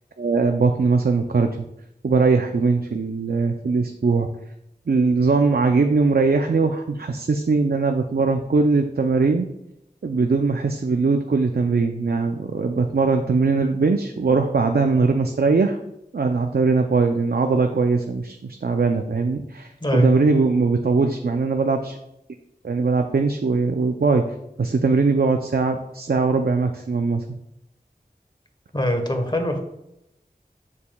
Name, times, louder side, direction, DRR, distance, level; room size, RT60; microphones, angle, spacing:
voice 1, 0.2-1.5 2.0-4.3 4.9-9.4 10.0-15.8 16.1-22.0 22.6-24.2 24.6-27.4, right 4 dB, 70° right, 5 dB, 0.5 m, -20 dB
voice 2, 28.7-29.6, left 1 dB, 25° left, 4 dB, 1.1 m, -23 dB
7.0 x 6.6 x 2.3 m, 0.83 s
wide cardioid pair, 40°, 17 cm